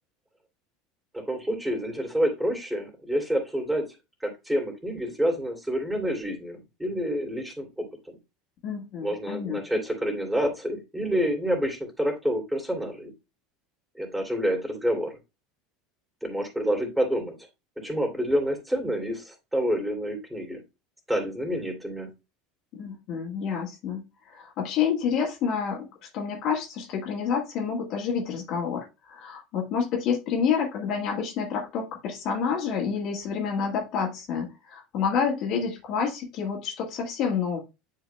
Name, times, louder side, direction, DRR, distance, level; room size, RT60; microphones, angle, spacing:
voice 1, 1.1-3.9 4.2-8.2 9.0-13.1 13.9-15.2 16.2-17.4 17.8-20.6 21.1-22.1, equal, 5° right, 2 dB, 2.8 m, -28 dB
voice 2, 8.6-9.6 22.7-25.9 26.1-37.6, left 6 dB, 45° left, 0 dB, 1.6 m, -28 dB
10.0 x 4.7 x 2.2 m, 0.26 s
figure-of-eight pair, 75°, 0 cm